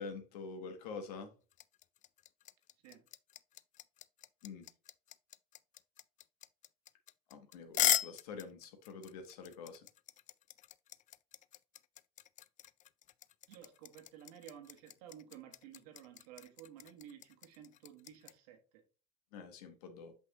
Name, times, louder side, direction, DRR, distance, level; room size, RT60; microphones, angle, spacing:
voice 1, 0.0-1.3 4.4-4.7 7.3-9.9 19.3-20.1, left 4 dB, 85° left, 1.1 m, -46 dB
sound 1, 1.5-18.3, left 12 dB, 40° left, 0.4 m, -38 dB
voice 2, 13.5-18.8, right 10 dB, 85° right, 1.3 m, -54 dB
6.0 x 5.5 x 3.0 m
supercardioid pair, 90°, 19 cm